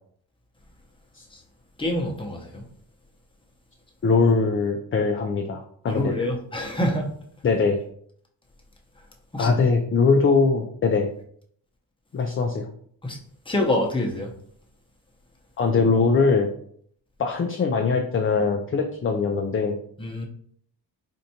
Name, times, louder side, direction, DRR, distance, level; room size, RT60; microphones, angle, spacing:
voice 1, 1.8-2.6 5.9-7.1 9.3-9.5 13.0-13.2 13.5-14.3 20.0-20.2, left 1 dB, 10° left, 0 dB, 0.8 m, -26 dB
voice 2, 4.0-6.1 7.4-7.8 9.4-11.1 12.1-12.6 15.6-16.5 17.2-19.8, left 4 dB, 30° left, 3 dB, 0.4 m, -21 dB
4.4 x 2.5 x 2.8 m, 0.62 s
cardioid pair, 85°, 44 cm